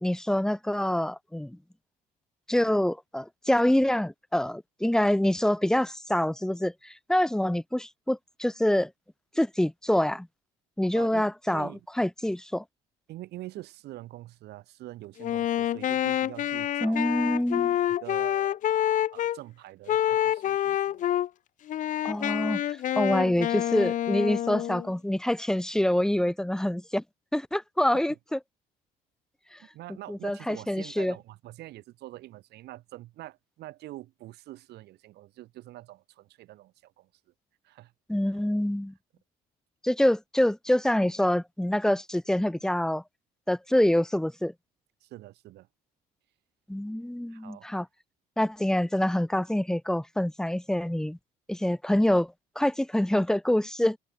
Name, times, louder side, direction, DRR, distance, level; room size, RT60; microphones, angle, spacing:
voice 1, 0.0-1.6 2.5-8.9 9.4-10.3 10.8-11.7 12.0-12.6 16.8-17.8 22.0-27.0 27.3-28.4 29.5-29.6 30.1-31.1 38.1-38.9 39.8-43.0 43.5-44.5 46.7-47.9 48.4-51.2 51.5-54.0, left 1 dB, 5° left, 0.7 m, -26 dB
voice 2, 10.9-11.8 13.1-17.1 17.9-18.6 19.1-21.0 27.9-28.2 29.6-37.1 37.6-37.9 38.2-38.3 45.0-45.7 47.3-47.7, right 16 dB, 75° right, 3.1 m, -45 dB
Wind instrument woodwind instrument, 15.2-19.4 19.9-21.3 21.7-24.9, left 12 dB, 50° left, 0.5 m, -27 dB
cardioid pair, 110°, 17 cm